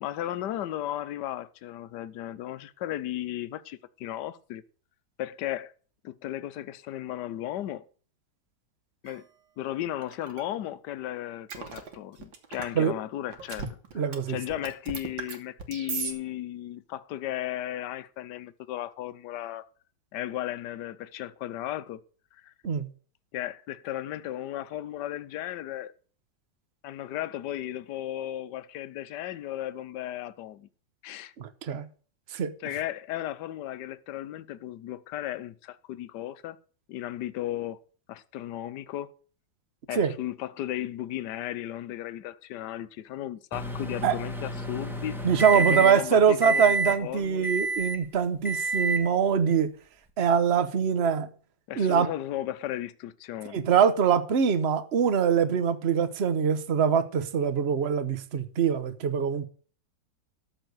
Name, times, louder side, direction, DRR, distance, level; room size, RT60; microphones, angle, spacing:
voice 1, 0.0-4.6 5.2-5.7 6.0-7.8 9.0-9.2 9.6-19.7 20.1-22.0 22.3-22.5 23.3-25.9 26.8-30.7 31.0-31.3 32.6-36.6 36.9-37.8 38.1-39.1 39.9-45.2 45.5-47.5 51.7-53.6, left 13 dB, 70° left, 1.3 m, -35 dB
sound 1, 9.1-9.2 10.0-10.4 11.5-12.7 13.3-14.1 14.4-16.1, right 6 dB, 85° right, 2.3 m, -36 dB
voice 2, 13.9-14.4 22.6-22.9 31.4-31.9 32.3-32.5 39.9-40.1 44.0-44.2 45.2-49.7 50.2-51.3 51.7-52.1 53.5-59.5, right 7 dB, 45° right, 1.0 m, -23 dB
Microwave oven, 43.5-46.1 46.4-47.0 47.4-48.0 48.4-49.1, right 3 dB, ahead, 1.1 m, -29 dB
13.5 x 4.5 x 7.9 m
omnidirectional pair, 2.0 m